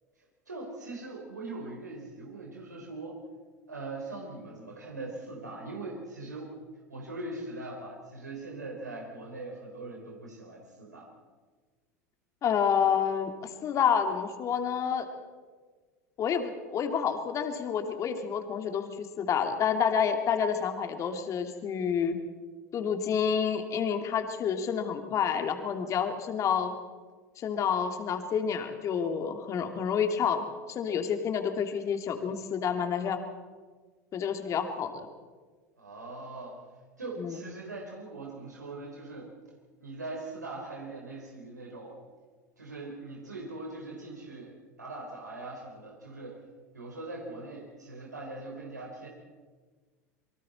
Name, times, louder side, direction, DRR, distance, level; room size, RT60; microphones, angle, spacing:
voice 1, 0.5-3.2 3.7-6.5 6.9-11.1 35.8-36.6 37.0-39.3 39.8-42.0 42.6-46.4 46.7-49.1, right 2 dB, 85° right, -1 dB, 4.2 m, -41 dB
voice 2, 12.4-15.1 16.2-22.2 22.7-26.7 27.4-33.2 34.1-35.0 37.2-37.4, left 7 dB, 35° left, 6 dB, 2.5 m, -29 dB
27.5 x 23.5 x 4.4 m, 1.5 s
figure-of-eight pair, 80°, 9 cm